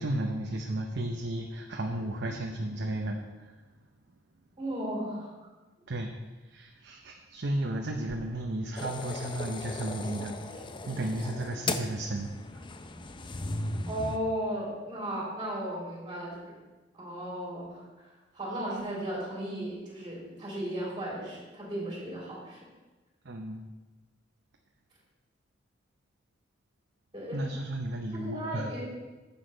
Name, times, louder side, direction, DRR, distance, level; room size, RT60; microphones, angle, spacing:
voice 1, 0.0-3.6 5.9-6.1 6.4-12.6 23.2-23.6 27.3-28.7, right 1 dB, 65° right, 2 dB, 0.8 m, -34 dB
voice 2, 4.6-5.3 13.9-16.5 16.9-18.1 18.3-22.6 27.1-27.4 28.1-28.9, right 1 dB, 25° right, -4 dB, 3.6 m, -35 dB
sound 1, 8.8-14.2, left 2 dB, 25° left, 0.5 m, -37 dB
10.5 x 7.1 x 4.6 m, 1.2 s
head